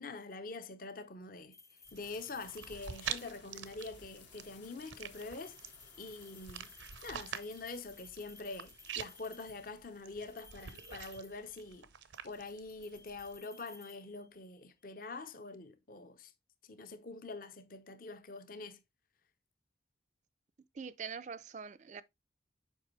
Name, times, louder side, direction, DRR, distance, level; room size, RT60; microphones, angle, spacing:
voice 1, 0.0-1.5 1.9-5.6 6.0-6.7 7.0-11.9 12.2-16.3 16.6-18.8, left 3 dB, 45° left, 0.7 m, -45 dB
sound 1, 1.5-3.3 5.0-9.7 10.3-11.8 12.1-14.6, left 4 dB, 15° left, 0.4 m, -58 dB
sound 2, 1.9-13.4, right 8 dB, 80° right, 0.7 m, -47 dB
sound 3, 2.0-10.3, left 7 dB, 75° left, 1.5 m, -61 dB
voice 2, 20.7-22.0, right 6 dB, 40° right, 0.4 m, -43 dB
7.5 x 5.1 x 3.1 m
head